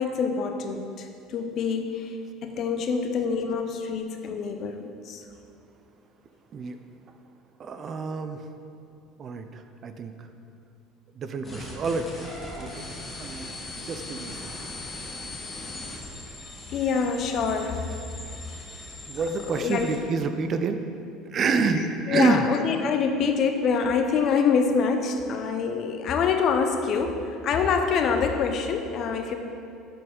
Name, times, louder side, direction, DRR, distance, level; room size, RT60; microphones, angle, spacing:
voice 1, 0.0-2.2 2.4-5.2 16.7-17.9 19.5-20.0 21.8-29.3, left 5 dB, 50° left, 6 dB, 0.5 m, -26 dB
voice 2, 7.6-8.4 9.2-10.3 11.2-12.1 12.5-12.8 13.2-13.5 13.8-14.5 19.1-20.8 21.3-22.5, right 4 dB, 40° right, 8 dB, 0.4 m, -28 dB
sound 1, 11.4-20.0, left 2 dB, 20° left, 1.2 m, -39 dB
6.6 x 4.2 x 3.7 m, 2.6 s
supercardioid pair, 115°, 0 cm